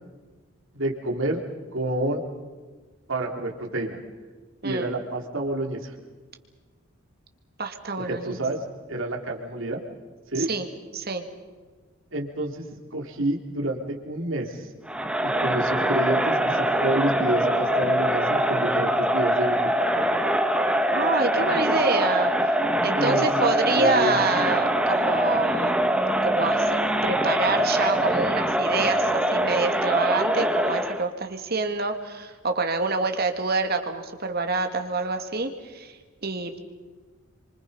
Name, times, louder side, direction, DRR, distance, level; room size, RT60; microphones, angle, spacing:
voice 1, 0.7-1.4 1.7-2.2 3.1-4.0 4.6-5.9 8.1-9.8 10.3-10.5 12.1-12.7 12.9-14.7 15.2-19.7 22.9-23.2 23.7-24.1, right 1 dB, 65° right, 1 dB, 3.4 m, -29 dB
voice 2, 7.6-8.4 10.4-10.7 10.9-11.2 20.9-22.6 22.8-25.8 26.2-36.6, right 3 dB, 45° right, 5 dB, 2.2 m, -27 dB
Crowd, 14.9-31.1, right 1 dB, 5° right, 1.3 m, -23 dB
28.5 x 25.5 x 5.6 m, 1.4 s
head